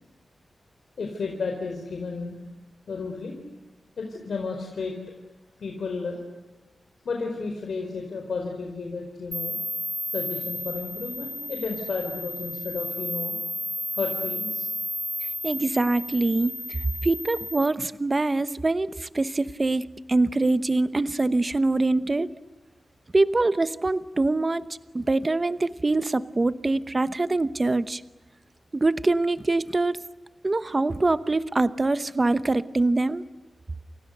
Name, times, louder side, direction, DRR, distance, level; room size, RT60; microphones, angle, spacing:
voice 1, 1.0-2.4 2.9-3.4 4.0-4.9 5.6-6.2 7.0-9.6 10.0-13.4 13.9-14.7, left 4 dB, 75° left, 2 dB, 4.7 m, -32 dB
sound 1, 9.3-17.7, left 1 dB, 5° left, 2.6 m, -33 dB
voice 2, 15.4-16.5 17.0-22.3 23.1-24.7 24.9-28.0 28.7-30.0 30.4-33.2, right 2 dB, 25° right, 13 dB, 0.9 m, -24 dB
29.5 x 28.5 x 6.7 m, 1.1 s
wide cardioid pair, 155°, 0 cm